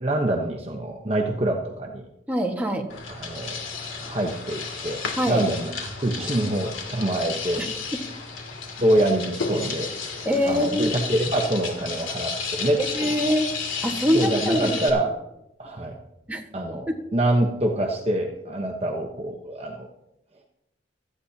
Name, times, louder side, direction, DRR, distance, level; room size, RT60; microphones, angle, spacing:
voice 1, 0.0-2.1 3.1-3.6 4.0-7.6 8.8-9.9 10.5-13.1 14.1-15.1 15.6-16.0 16.5-19.9, right 1 dB, 30° right, 1 dB, 1.0 m, -25 dB
voice 2, 2.3-2.9 5.2-5.4 7.6-7.7 10.2-10.9 12.8-13.5 13.8-14.8 16.3-16.4 16.9-17.0, equal, 10° right, 0 dB, 1.5 m, -24 dB
sound 1, 2.9-14.9, left 5 dB, 80° left, 2.5 m, -32 dB
16.5 x 13.0 x 2.8 m, 0.86 s
head